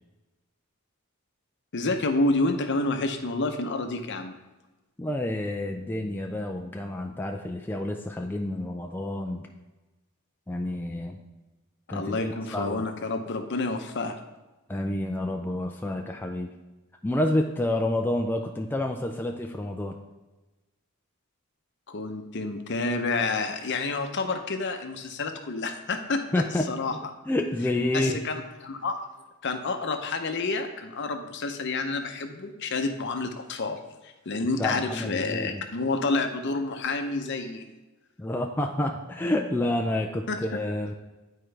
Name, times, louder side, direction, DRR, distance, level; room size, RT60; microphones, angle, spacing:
voice 1, 1.7-4.3 11.9-14.2 21.9-26.2 26.7-26.9 27.9-29.0 29.4-37.6 40.3-40.4, left 3 dB, 55° left, 6 dB, 0.7 m, -29 dB
voice 2, 5.0-9.5 10.5-11.2 11.9-12.8 14.7-16.5 17.0-20.0 26.3-26.6 26.9-27.0 27.3-28.3 34.6-35.6 38.2-40.9, left 1 dB, 10° left, 2 dB, 0.3 m, -29 dB
9.7 x 4.5 x 3.3 m, 1.1 s
head